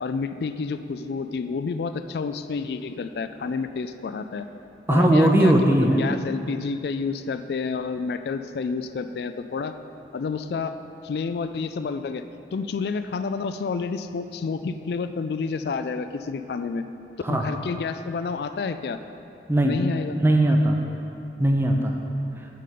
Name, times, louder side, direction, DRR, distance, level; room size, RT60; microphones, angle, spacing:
voice 1, 0.0-4.5 4.9-9.7 10.1-10.7 11.0-12.2 12.5-16.8 17.3-19.0 19.6-20.2, left 4 dB, 65° left, 10 dB, 0.3 m, -29 dB
voice 2, 4.9-6.0 17.2-17.4 19.5-19.8 20.2-20.8 21.4-22.0, right 1 dB, 15° right, 2 dB, 0.6 m, -19 dB
7.5 x 5.4 x 7.5 m, 2.8 s
head